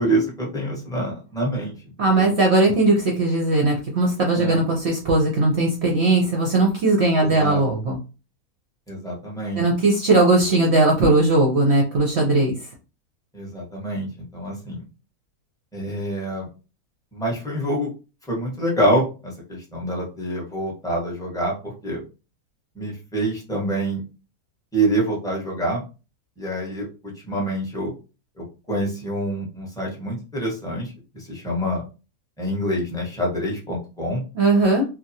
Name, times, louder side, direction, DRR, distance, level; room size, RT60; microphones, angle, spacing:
voice 1, 0.0-1.7 2.0-2.3 4.3-4.6 7.2-7.6 8.9-9.6 13.3-14.8 15.7-16.5 17.1-17.9 18.3-22.0 22.8-24.0 24.7-25.8 26.4-27.9 28.4-31.8 32.4-34.2, right 1 dB, 5° left, -3 dB, 0.7 m, -26 dB
voice 2, 2.0-8.0 9.6-12.5 34.3-34.9, right 2 dB, 55° right, -1 dB, 0.7 m, -19 dB
2.8 x 2.2 x 2.7 m, 0.32 s
omnidirectional pair, 1.7 m